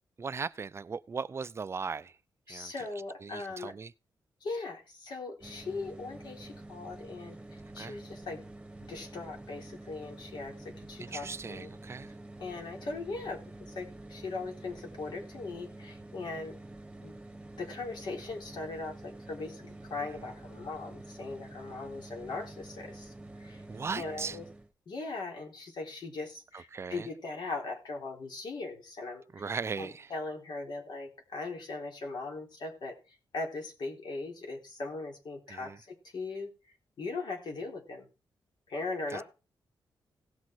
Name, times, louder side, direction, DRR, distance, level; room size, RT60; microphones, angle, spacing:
voice 1, 0.2-2.2 2.5-2.9 3.2-3.9 7.8-8.0 11.0-12.1 20.0-20.3 23.7-24.4 26.5-27.1 29.3-30.1 35.5-35.8 39.1-39.2, right 5 dB, 35° right, 0.5 m, -38 dB
voice 2, 2.5-3.7 4.4-8.4 8.9-11.7 12.4-16.5 17.0-17.2 17.6-23.1 23.4-23.6 23.9-24.4 24.9-29.5 29.8-32.9 33.3-36.5 37.0-38.1 38.7-39.2, left 3 dB, 70° left, 3.9 m, -39 dB
sound 1, 5.4-24.7, right 2 dB, 10° right, 1.2 m, -48 dB
17.5 x 6.3 x 4.6 m
wide cardioid pair, 125°, 8 cm